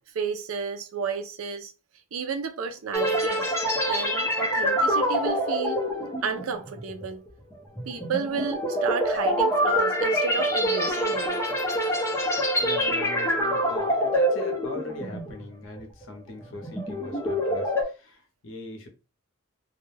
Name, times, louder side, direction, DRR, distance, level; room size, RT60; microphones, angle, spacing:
voice 1, 0.1-1.7 2.1-3.6 3.9-5.8 6.2-7.2 7.9-11.4, right 5 dB, 75° right, 0.5 m, -32 dB
sound 1, 2.9-15.4 15.8-16.0 16.5-17.8, equal, 15° left, 0.6 m, -25 dB
voice 2, 12.6-18.9, left 1 dB, 65° left, 0.7 m, -40 dB
2.4 x 2.2 x 3.1 m
head